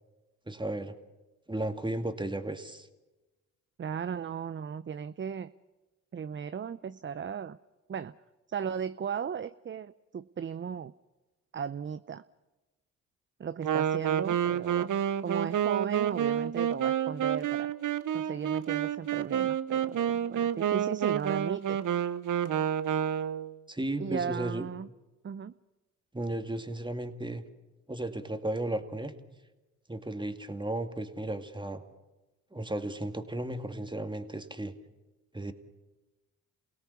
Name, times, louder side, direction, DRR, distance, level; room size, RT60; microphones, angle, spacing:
voice 1, 0.5-0.9 1.5-2.9 23.7-24.7 26.1-27.4 27.9-29.1 29.9-31.8 32.5-34.7 35.3-35.5, right 1 dB, 10° right, 7 dB, 2.3 m, -34 dB
voice 2, 3.8-5.5 6.1-7.6 7.9-8.1 8.5-10.9 11.5-12.2 13.4-14.9 15.2-17.7 18.1-21.8 24.0-24.9 25.2-25.5, right 7 dB, 30° right, 13 dB, 0.7 m, -36 dB
Wind instrument woodwind instrument, 13.6-23.5, right 9 dB, 55° right, 1.1 m, -29 dB
28.5 x 17.5 x 7.1 m, 1.1 s
hypercardioid pair, 55°, 38 cm